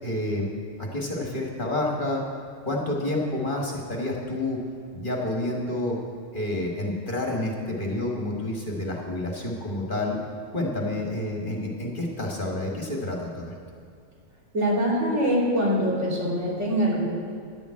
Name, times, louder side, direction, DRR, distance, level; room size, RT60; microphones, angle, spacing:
voice 1, 0.0-0.5 0.8-2.2 2.6-4.6 4.9-6.0 6.3-10.2 10.5-13.5, left 1 dB, 40° left, -1 dB, 1.7 m, -29 dB
voice 2, 14.5-17.1, equal, 65° right, -6 dB, 3.4 m, -23 dB
11.0 x 7.1 x 8.5 m, 2.3 s
omnidirectional pair, 1.3 m